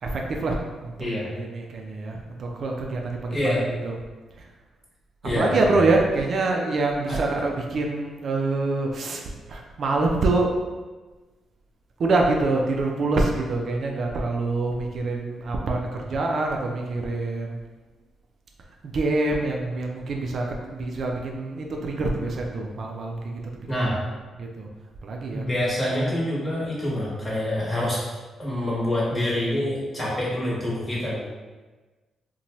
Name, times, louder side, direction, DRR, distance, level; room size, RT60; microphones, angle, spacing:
voice 1, 0.0-4.0 4.4-4.5 5.3-9.2 9.5-10.5 12.0-17.6 18.8-23.4 24.3-24.7 25.0-25.5, right 2 dB, 55° right, 0 dB, 0.3 m, -26 dB
voice 2, 3.3-3.6 5.2-5.9 7.1-7.2 23.7-24.0 25.3-28.0 28.4-31.2, left 1 dB, 20° left, -6 dB, 1.0 m, -26 dB
2.7 x 2.2 x 2.9 m, 1.3 s
cardioid pair, 95°, 0 cm